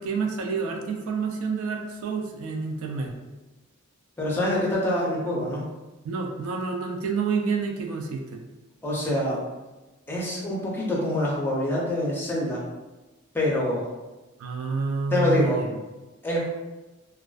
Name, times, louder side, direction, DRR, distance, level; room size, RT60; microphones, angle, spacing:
voice 1, 0.0-3.1 6.0-8.4 14.4-15.7, right 4 dB, 75° right, 2 dB, 0.3 m, -28 dB
voice 2, 4.2-5.7 8.8-9.4 10.1-12.6 13.3-13.9 15.1-15.6 16.2-16.5, left 1 dB, 10° left, -4 dB, 0.5 m, -25 dB
2.4 x 2.2 x 2.3 m, 1.1 s
head